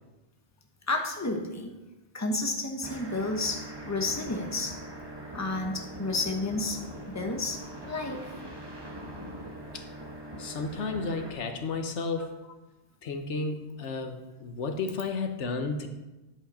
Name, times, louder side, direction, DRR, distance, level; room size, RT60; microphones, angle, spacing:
voice 1, 0.9-1.8 2.1-4.8 5.3-6.8 7.1-8.3, left 2 dB, 15° left, 3 dB, 1.0 m, -31 dB
sound 1, 2.8-11.3, right 1 dB, 20° right, 1.4 m, -42 dB
voice 2, 10.4-12.3 13.0-15.9, left 4 dB, 85° left, 6 dB, 1.3 m, -32 dB
10.5 x 8.2 x 4.3 m, 1.0 s
omnidirectional pair, 1.2 m